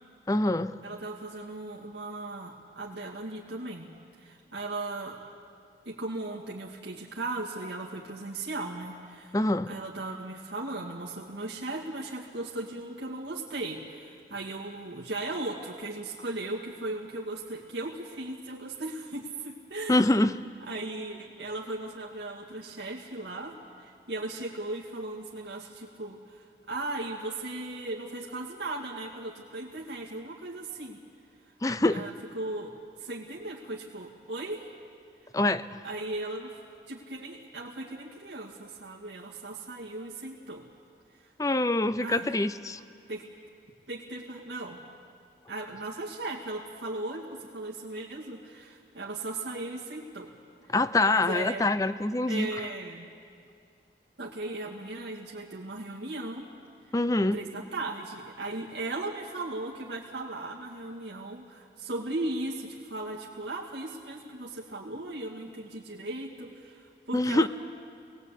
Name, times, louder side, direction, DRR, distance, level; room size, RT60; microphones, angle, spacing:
voice 1, 0.3-0.7 9.3-9.7 19.9-20.4 31.6-32.1 35.3-35.7 41.4-42.8 50.7-52.5 56.9-57.4 67.1-67.5, left 2 dB, 20° left, 14 dB, 0.5 m, -25 dB
voice 2, 0.8-3.9 4.2-5.2 5.9-9.4 9.7-20.2 20.7-31.0 31.9-34.7 35.8-36.6 36.9-40.6 41.2-41.3 42.0-42.3 43.1-43.3 43.9-44.8 45.5-50.3 51.1-51.7 52.3-53.1 54.2-56.5 57.3-67.5, right 2 dB, 90° right, -3 dB, 2.2 m, -37 dB
25.0 x 20.0 x 8.4 m, 2.4 s
head